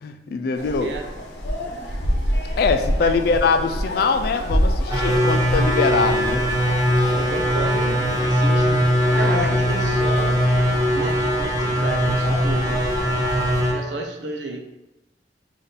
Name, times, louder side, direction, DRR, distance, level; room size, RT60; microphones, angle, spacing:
voice 1, 0.0-0.9 2.6-6.5 6.9-7.2 9.1-9.5, left 4 dB, 55° left, 7 dB, 0.3 m, -23 dB
sound 1, 0.5-13.6, equal, 70° left, 0.8 m, -28 dB
sound 2, 4.9-13.7, equal, 20° right, 0.6 m, -21 dB
sound 3, 5.2-13.7, left 1 dB, 50° right, 1.1 m, -34 dB
voice 2, 7.1-10.4 10.9-12.9 13.7-14.6, right 2 dB, 80° right, 2 dB, 0.6 m, -32 dB
3.6 x 2.6 x 4.0 m, 0.94 s
head